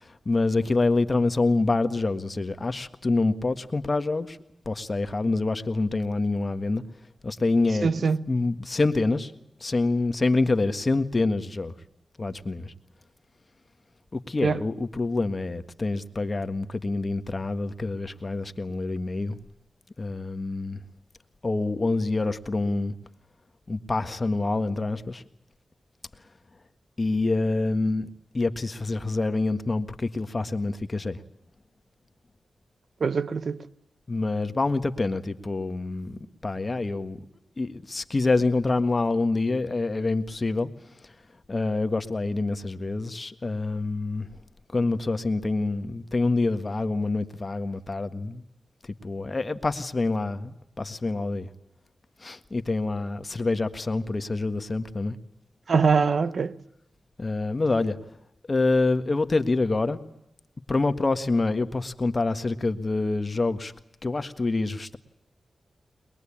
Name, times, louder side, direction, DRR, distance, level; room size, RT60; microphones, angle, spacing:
voice 1, 0.0-4.4 4.7-6.8 7.2-9.3 9.6-11.7 12.2-12.7 14.1-19.4 20.0-20.8 21.4-22.9 23.7-25.2 27.0-28.1 28.3-31.2 34.1-37.2 37.6-40.7 41.5-44.3 44.7-48.4 49.0-51.5 52.2-55.2 57.2-58.0 58.5-60.0 60.7-63.7 64.0-65.0, left 3 dB, 40° left, 1.7 m, -26 dB
voice 2, 7.8-8.2 14.4-14.6 33.0-33.6 55.7-56.5, right 5 dB, 65° right, 0.9 m, -23 dB
23.0 x 21.5 x 8.7 m
cardioid pair, 50°, 0 cm